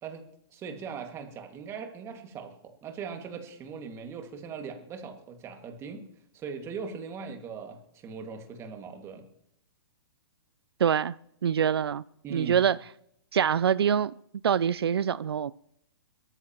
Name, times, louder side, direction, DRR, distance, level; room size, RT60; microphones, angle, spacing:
voice 1, 0.0-6.1 6.3-9.3 12.2-12.6, right 6 dB, 20° right, 5 dB, 2.1 m, -40 dB
voice 2, 10.8-11.1 11.4-12.0 12.3-12.8 13.3-14.1 14.4-15.5, right 8 dB, 90° right, 20 dB, 0.4 m, -24 dB
23.5 x 14.0 x 3.0 m, 0.74 s
hypercardioid pair, 140°, 13 cm